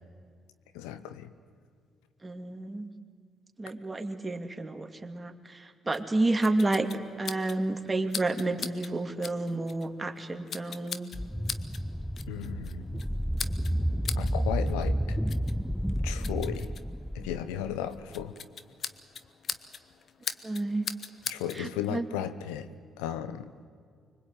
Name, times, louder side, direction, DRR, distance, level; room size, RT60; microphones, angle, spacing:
voice 1, 0.7-1.3 12.3-12.9 14.2-15.2 16.0-16.7 17.1-18.4 21.3-22.7 23.0-23.5, left 10 dB, 80° left, 12 dB, 0.9 m, -35 dB
voice 2, 2.2-2.9 3.6-6.9 7.2-11.1 20.4-20.8 21.6-22.0, right 2 dB, 25° right, 6 dB, 2.5 m, -30 dB
sound 1, 5.9-21.6, left 6 dB, 55° left, 1.2 m, -42 dB
sound 2, 11.1-18.2, equal, ahead, 0.6 m, -31 dB
25.0 x 23.0 x 9.1 m, 2.1 s
hypercardioid pair, 50°, 0 cm